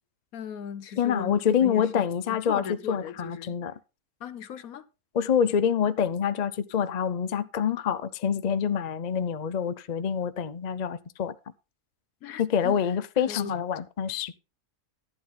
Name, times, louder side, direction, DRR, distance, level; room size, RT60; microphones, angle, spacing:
voice 1, 0.3-3.6 4.2-4.9 12.2-12.9 13.3-13.5, left 7 dB, 70° left, 1.3 m, -38 dB
voice 2, 1.0-3.7 5.1-11.3 12.4-14.3, left 8 dB, 55° left, 0.4 m, -26 dB
12.0 x 9.4 x 3.8 m
omnidirectional pair, 1.6 m